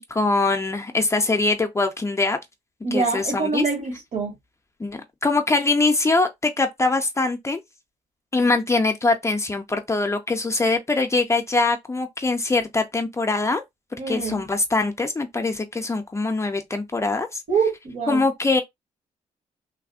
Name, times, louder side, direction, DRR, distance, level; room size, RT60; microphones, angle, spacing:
voice 1, 0.1-2.4 2.9-3.6 4.8-7.6 8.3-13.6 14.1-17.4 18.1-18.6, left 3 dB, 20° left, 0.5 m, -23 dB
voice 2, 2.8-4.3 14.0-14.4 17.5-18.2, right 4 dB, 65° right, 1.5 m, -25 dB
3.3 x 2.1 x 2.4 m
cardioid pair, 100°, 13 cm